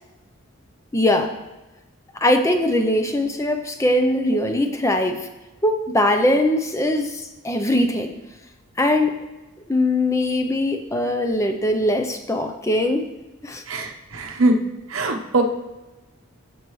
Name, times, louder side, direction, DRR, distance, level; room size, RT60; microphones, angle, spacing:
voice 1, 0.9-1.3 2.1-5.3 5.6-8.1 8.8-9.2 9.7-13.1 13.4-13.6, left 1 dB, 15° left, 6 dB, 0.6 m, -21 dB
voice 2, 13.7-14.5 14.9-15.4, right 2 dB, 80° right, 3 dB, 1.0 m, -21 dB
14.5 x 6.8 x 3.1 m, 1.1 s
head